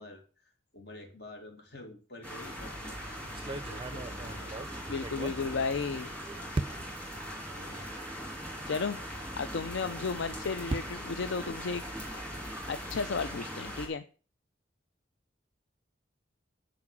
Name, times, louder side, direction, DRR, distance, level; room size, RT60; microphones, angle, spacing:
voice 1, 0.0-4.7 5.2-5.7 5.9-6.1 7.5-7.9, left 2 dB, 55° left, 4 dB, 2.2 m, -49 dB
sound 1, 2.2-13.9, equal, 5° left, 2.7 m, -40 dB
sound 2, 2.5-2.8 3.3-6.1 6.5-7.1 7.8-7.9 8.3-8.4 10.0-12.3, right 2 dB, 25° right, 0.4 m, -39 dB
voice 2, 4.9-6.1 8.7-9.0 9.4-11.8 12.7-14.0, left 5 dB, 70° left, 12 dB, 0.4 m, -33 dB
9.7 x 5.0 x 6.0 m, 0.38 s
head